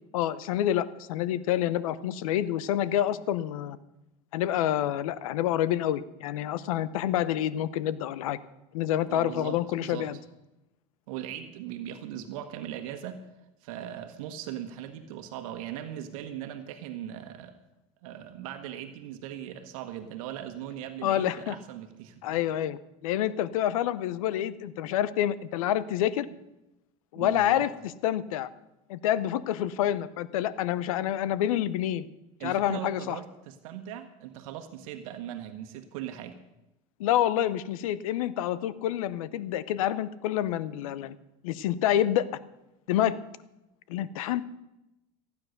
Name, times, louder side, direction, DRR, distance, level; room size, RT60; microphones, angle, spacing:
voice 1, 0.1-3.8 4.3-8.4 8.7-10.2 21.0-21.6 22.2-26.3 27.1-27.7 28.0-28.5 28.9-32.1 32.4-33.2 37.0-41.2 41.4-42.3 42.9-43.2 43.9-44.4, left 12 dB, 85° left, 17 dB, 0.8 m, -28 dB
voice 2, 9.1-10.1 11.1-13.2 13.6-17.5 18.0-22.4 27.1-27.7 32.4-36.4, right 10 dB, 80° right, 7 dB, 1.4 m, -39 dB
15.5 x 9.6 x 6.6 m, 0.93 s
supercardioid pair, 105°, 17 cm